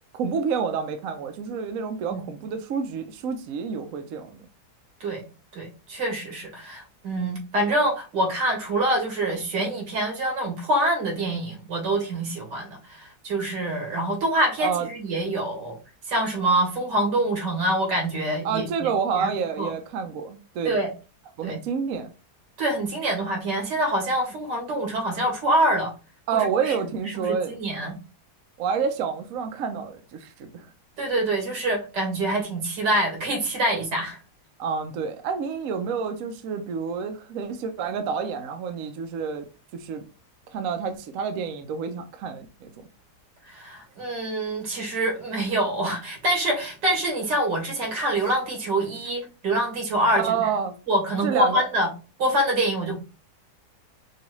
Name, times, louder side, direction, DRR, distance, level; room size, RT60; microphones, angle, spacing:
voice 1, 0.1-4.4 14.6-14.9 18.4-20.8 21.4-22.1 26.3-27.6 28.6-30.7 34.6-39.4 39.7-40.0 40.5-42.7 50.1-50.7 51.2-51.6, right 6 dB, 65° right, 0.9 m, -28 dB
voice 2, 5.5-15.8 16.1-18.9 19.1-19.3 19.6-19.7 20.6-20.9 21.4-21.6 22.6-25.9 26.3-26.7 27.1-27.9 31.0-34.2 43.5-50.5 50.9-51.9 52.2-52.9, right 1 dB, 85° right, 2.2 m, -25 dB
5.3 x 2.4 x 3.0 m
omnidirectional pair, 1.8 m